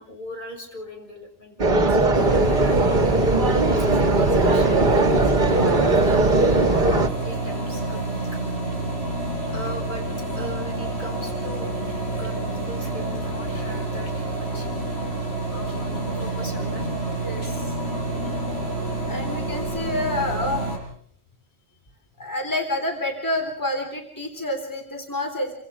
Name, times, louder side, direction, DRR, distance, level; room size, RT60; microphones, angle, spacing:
voice 1, 0.0-5.2 5.5-5.8 6.4-6.9 7.2-8.4 9.5-10.1 10.4-11.7 12.1-14.7 15.5-16.9, left 1 dB, 55° left, 1 dB, 7.3 m, -39 dB
sound 1, 1.6-7.1, right 2 dB, 50° right, 1.6 m, -19 dB
sound 2, 2.1-20.8, right 2 dB, 80° left, 8.0 m, -28 dB
voice 2, 17.2-17.7 18.2-18.3 19.1-20.7 22.2-25.5, left 1 dB, 20° left, 3 dB, 3.5 m, -28 dB
28.0 x 26.0 x 5.0 m, 0.63 s
omnidirectional pair, 1.0 m